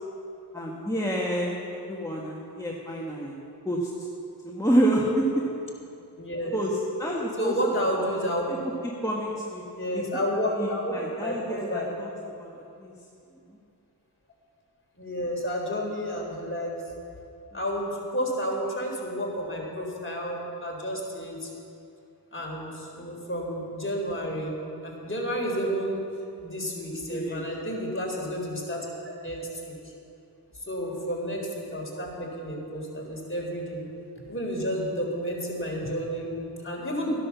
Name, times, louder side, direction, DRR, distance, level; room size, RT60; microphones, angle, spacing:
voice 1, 0.5-3.3 3.6-3.9 4.4-5.3 6.5-7.5 8.8-9.6 9.9-10.0 10.5-12.1 12.4-12.5 12.8-12.9 27.1-27.4, equal, 10° left, -4 dB, 1.8 m, -28 dB
voice 2, 6.2-6.5 7.4-8.4 9.8-10.9 11.2-11.9 15.0-16.7 17.5-21.5 22.3-24.5 24.8-26.0 26.4-29.7 30.7-33.8 34.3-37.1, equal, 30° left, -2 dB, 3.8 m, -31 dB
13.5 x 10.5 x 7.1 m, 2.6 s
cardioid pair, 45°, 41 cm